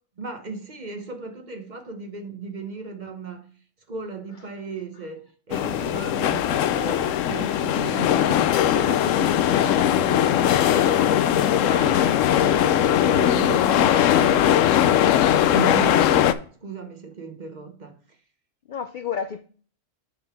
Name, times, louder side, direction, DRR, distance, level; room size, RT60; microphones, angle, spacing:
voice 1, 0.2-3.5 3.9-15.1 15.5-16.3 16.6-18.2, right 5 dB, 40° right, 1.0 m, -36 dB
sound 1, 5.5-16.3, left 10 dB, 85° left, 0.9 m, -20 dB
voice 2, 18.7-19.4, left 7 dB, 60° left, 0.5 m, -32 dB
7.2 x 3.9 x 5.8 m
omnidirectional pair, 1.3 m